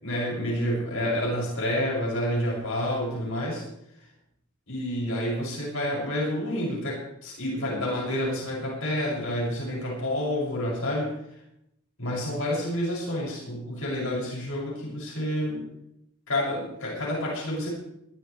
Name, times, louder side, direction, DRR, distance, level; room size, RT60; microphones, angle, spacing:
voice 1, 0.0-3.6 4.7-11.1 12.0-15.7 16.3-17.7, left 1 dB, 70° left, -4 dB, 6.5 m, -29 dB
21.0 x 14.0 x 3.3 m, 0.78 s
head